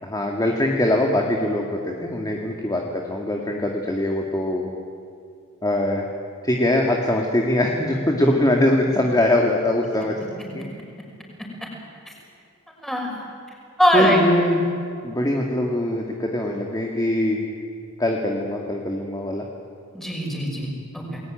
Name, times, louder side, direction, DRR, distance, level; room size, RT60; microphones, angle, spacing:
voice 1, 0.0-4.7 5.6-6.1 6.4-10.1 10.5-10.6 13.9-14.6 15.0-17.4 18.0-19.5, left 1 dB, 15° left, 0 dB, 2.1 m, -22 dB
voice 2, 12.8-13.2 13.8-14.2 19.9-21.2, equal, ahead, -1 dB, 5.9 m, -22 dB
28.5 x 21.0 x 9.1 m, 2.4 s
head